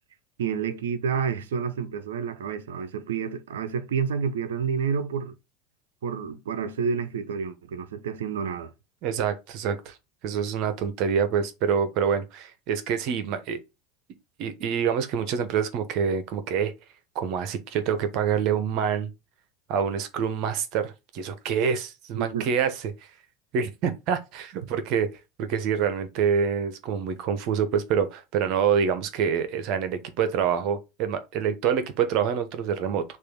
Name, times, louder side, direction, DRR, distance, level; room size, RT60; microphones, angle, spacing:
voice 1, 0.4-5.4 6.0-8.7 22.1-22.5, right 6 dB, 75° right, 0.8 m, -29 dB
voice 2, 9.0-10.0 10.2-13.6 14.4-16.7 17.1-19.1 19.7-22.7 23.5-25.1 25.4-33.0, right 7 dB, 55° right, 1.1 m, -26 dB
6.6 x 2.8 x 5.3 m
hypercardioid pair, 80°, 0 cm